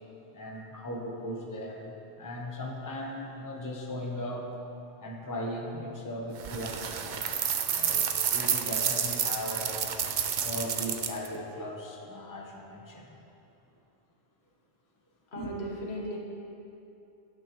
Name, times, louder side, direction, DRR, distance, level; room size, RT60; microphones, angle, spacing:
voice 1, 0.3-4.5 5.0-7.3 7.7-9.8 10.4-13.1 15.4-15.5, left 1 dB, 20° left, -1 dB, 0.9 m, -38 dB
sound 1, 6.4-11.3, right 7 dB, 55° right, 0.6 m, -30 dB
voice 2, 15.3-16.2, equal, 75° left, -2 dB, 1.6 m, -36 dB
11.5 x 9.3 x 3.0 m, 2.8 s
omnidirectional pair, 1.1 m